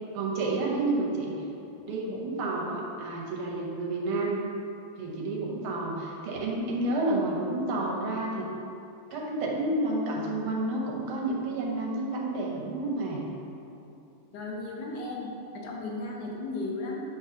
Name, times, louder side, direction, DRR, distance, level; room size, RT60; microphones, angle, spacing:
voice 1, 0.1-1.4 1.8-4.4 5.0-8.5 9.1-13.3, right 2 dB, 90° right, -2 dB, 1.9 m, -30 dB
voice 2, 14.3-17.0, left 2 dB, 60° left, -2 dB, 1.6 m, -35 dB
8.7 x 3.2 x 5.8 m, 2.8 s
omnidirectional pair, 2.3 m